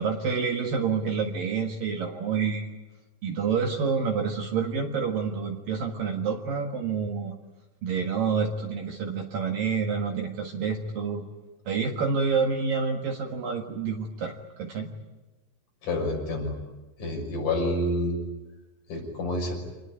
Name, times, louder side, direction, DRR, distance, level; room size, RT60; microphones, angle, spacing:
voice 1, 0.0-2.7 3.2-7.3 7.8-11.2 11.7-14.9, right 5 dB, 60° right, 3 dB, 3.0 m, -28 dB
voice 2, 15.8-16.5 17.0-18.2 18.9-19.6, left 1 dB, 45° left, 0 dB, 7.5 m, -28 dB
27.5 x 19.5 x 9.9 m, 1.1 s
omnidirectional pair, 5.1 m